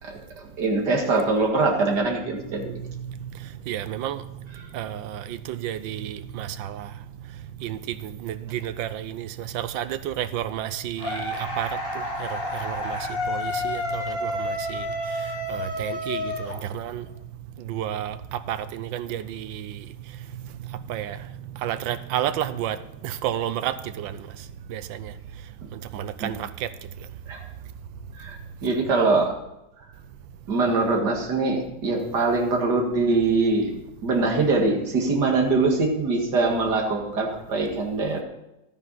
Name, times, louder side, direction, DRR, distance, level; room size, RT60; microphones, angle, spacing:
voice 1, 0.0-2.7 26.2-26.3 27.3-27.5 28.2-29.3 30.5-33.7 34.0-38.2, right 3 dB, 60° right, 2.5 m, -23 dB
voice 2, 3.4-4.2 4.7-6.9 7.6-11.8 12.2-14.9 15.5-17.1 17.6-19.9 20.7-21.2 21.6-22.8 23.0-24.3 24.7-25.1 25.7-26.7, right 11 dB, 90° right, 1.4 m, -31 dB
sound 1, 11.0-17.1, left 1 dB, 30° left, 1.8 m, -30 dB
13.0 x 9.2 x 4.1 m
omnidirectional pair, 2.0 m